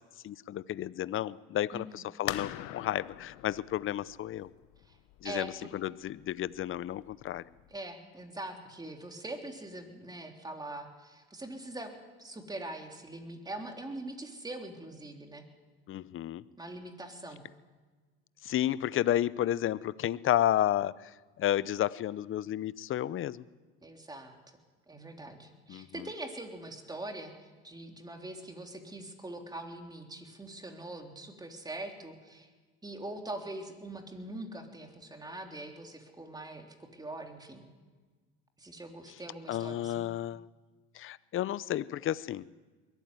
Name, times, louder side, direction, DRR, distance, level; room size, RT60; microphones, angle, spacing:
voice 1, 0.2-4.5 5.2-7.4 15.9-16.4 18.4-21.1 21.4-23.5 25.7-25.9 39.5-40.4 40.9-42.4, left 12 dB, 40° left, 19 dB, 0.7 m, -32 dB
sound 1, 2.3-7.8, left 15 dB, 70° left, 1.1 m, -43 dB
voice 2, 5.2-5.7 7.7-11.9 12.2-15.4 16.6-17.4 23.8-24.4 24.9-27.3 27.6-32.5 32.8-37.6 38.6-40.1, right 2 dB, 15° right, 3 dB, 3.5 m, -43 dB
22.0 x 14.0 x 9.6 m, 1.4 s
supercardioid pair, 100°, 31 cm